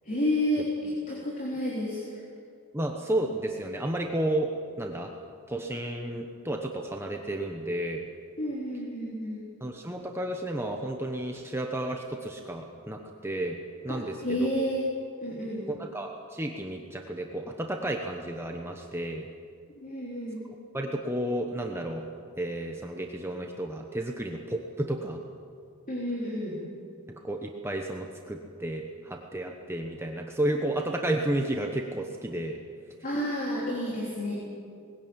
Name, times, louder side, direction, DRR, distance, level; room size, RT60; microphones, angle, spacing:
voice 1, 0.0-2.0 8.4-9.5 13.9-14.9 15.2-15.7 19.8-20.4 25.9-26.6 33.0-34.3, equal, 40° left, -4 dB, 3.8 m, -30 dB
voice 2, 2.7-5.1 5.5-8.1 9.6-14.5 15.7-19.3 20.7-22.0 22.4-25.2 27.1-32.6, right 1 dB, 10° right, 2 dB, 1.1 m, -32 dB
20.5 x 17.0 x 8.9 m, 2.3 s
head